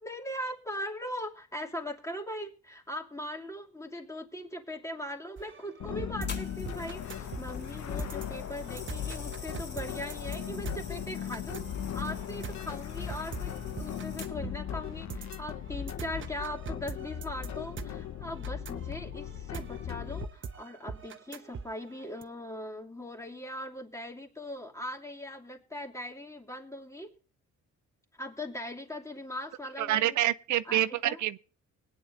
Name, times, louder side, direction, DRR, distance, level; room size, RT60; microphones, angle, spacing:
voice 1, 0.0-27.1 28.2-30.2 30.6-31.2, left 1 dB, 10° left, 2.7 m, -40 dB
sound 1, 5.4-22.2, right 5 dB, 40° right, 1.1 m, -44 dB
sound 2, 5.8-20.3, left 9 dB, 65° left, 1.0 m, -38 dB
sound 3, 6.3-14.6 15.3-15.6, left 3 dB, 35° left, 3.0 m, -47 dB
voice 2, 29.8-31.4, right 13 dB, 70° right, 0.5 m, -27 dB
20.5 x 10.0 x 2.7 m
cardioid pair, 90°, 30 cm